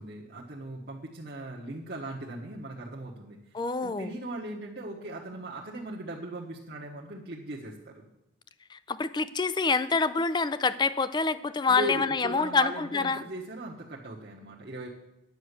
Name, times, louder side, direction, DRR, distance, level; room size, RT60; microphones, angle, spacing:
voice 1, 0.0-3.4 3.8-8.1 11.7-14.9, right 1 dB, 55° right, -4 dB, 1.2 m, -38 dB
voice 2, 3.5-4.1 8.7-13.2, left 4 dB, 25° left, 15 dB, 0.4 m, -27 dB
9.5 x 6.3 x 8.1 m, 0.89 s
head